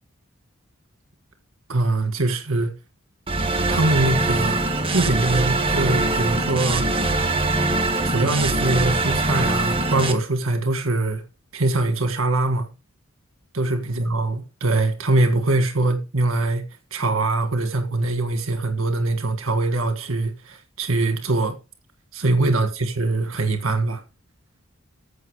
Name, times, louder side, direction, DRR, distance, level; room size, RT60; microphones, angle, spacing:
voice 1, 1.7-2.7 3.7-4.6 4.9-6.9 8.0-11.2 11.5-12.7 13.5-16.6 16.9-21.6 22.1-22.7 23.0-24.0, right 2 dB, 80° right, 1.7 m, -22 dB
sound 1, 3.3-10.1, right 2 dB, 25° right, 1.7 m, -22 dB
15.0 x 5.7 x 4.8 m
head